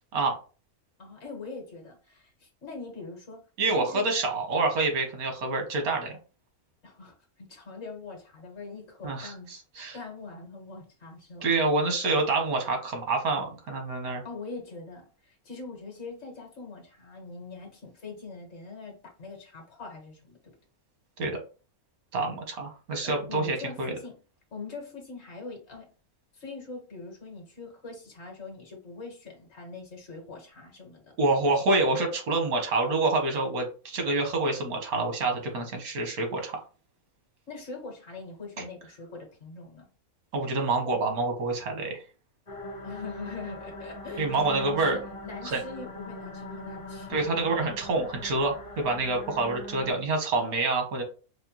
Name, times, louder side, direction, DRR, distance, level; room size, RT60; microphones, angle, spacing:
voice 1, 1.0-3.4 3.8-4.1 6.8-9.5 9.9-11.5 14.2-20.5 23.0-24.2 24.5-25.9 26.3-31.1 37.5-39.9 42.8-47.4, left 4 dB, 50° left, 1 dB, 1.5 m, -42 dB
voice 2, 3.6-6.2 9.0-10.0 11.4-14.2 21.2-21.4 22.1-23.9 31.2-36.6 38.6-38.7 40.3-42.0 44.2-45.0 45.4-45.6 47.1-51.0, right 3 dB, 90° right, 3 dB, 1.6 m, -27 dB
sound 1, 42.5-49.9, left 1 dB, 30° left, 0.7 m, -41 dB
4.9 x 2.1 x 2.9 m, 0.35 s
omnidirectional pair, 1.5 m